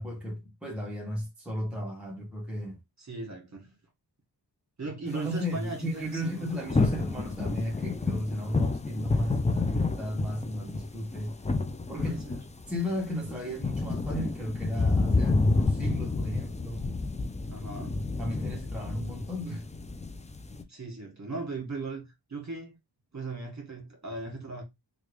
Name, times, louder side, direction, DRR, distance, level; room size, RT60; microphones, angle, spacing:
voice 1, 0.0-2.8 4.8-11.4 11.9-12.2 12.7-16.9 18.2-19.7, equal, 5° right, 1.0 m, -34 dB
voice 2, 3.0-3.8 4.8-6.5 12.0-12.4 17.5-18.0 20.7-22.8 23.1-24.6, right 3 dB, 40° right, 1.6 m, -38 dB
sound 1, 6.1-20.6, left 3 dB, 15° left, 0.4 m, -30 dB
3.3 x 2.4 x 3.2 m
wide cardioid pair, 45°, 44 cm